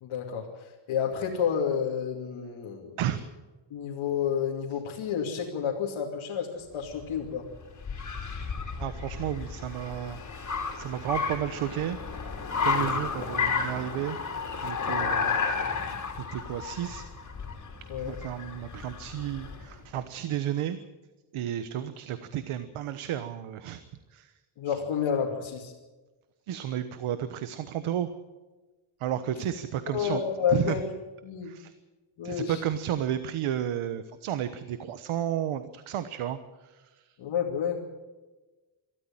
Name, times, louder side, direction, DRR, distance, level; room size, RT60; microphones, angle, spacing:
voice 1, 0.0-3.0 3.7-7.5 12.8-12.9 17.9-18.1 24.6-25.7 29.9-30.9 31.2-31.5 32.2-32.6 37.2-37.8, left 7 dB, 85° left, -2 dB, 2.9 m, -30 dB
Car, 6.8-19.8, left 5 dB, 35° left, 3.6 m, -32 dB
voice 2, 8.8-10.2 10.7-12.0 12.5-14.2 14.6-15.8 16.3-17.0 18.0-20.8 21.3-23.8 24.1-24.3 24.7-24.8 26.5-28.1 29.0-30.2 30.5-30.8 31.4-31.7 32.2-37.1, right 11 dB, 90° right, 11 dB, 1.2 m, -32 dB
23.0 x 13.5 x 8.9 m, 1.2 s
cardioid pair, 135°, 48 cm